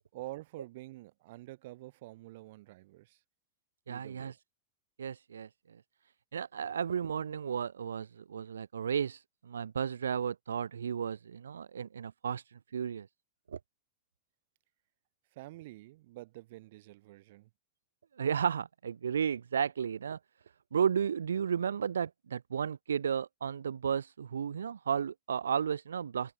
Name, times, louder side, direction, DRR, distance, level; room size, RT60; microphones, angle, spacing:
voice 1, 0.1-3.2 3.9-4.3 15.3-17.5, right 18 dB, 50° right, 1.5 m, -48 dB
voice 2, 3.9-4.3 5.0-5.5 6.3-13.1 13.5-13.6 18.2-20.2 20.7-26.3, right 7 dB, 70° right, 0.6 m, -33 dB
figure-of-eight pair, 90°, 0 cm